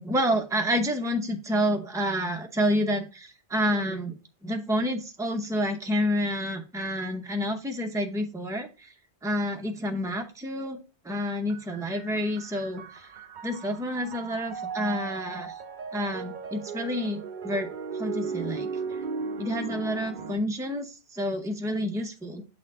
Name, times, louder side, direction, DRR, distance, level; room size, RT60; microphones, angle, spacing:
voice 1, 0.0-8.9 9.2-10.8 11.0-13.1 13.4-15.6 15.9-18.7 19.4-22.4, equal, 5° right, 4 dB, 0.5 m, -29 dB
sound 1, 11.5-20.3, right 5 dB, 50° right, 0.6 m, -37 dB
7.7 x 4.3 x 3.6 m, 0.31 s
omnidirectional pair, 1.2 m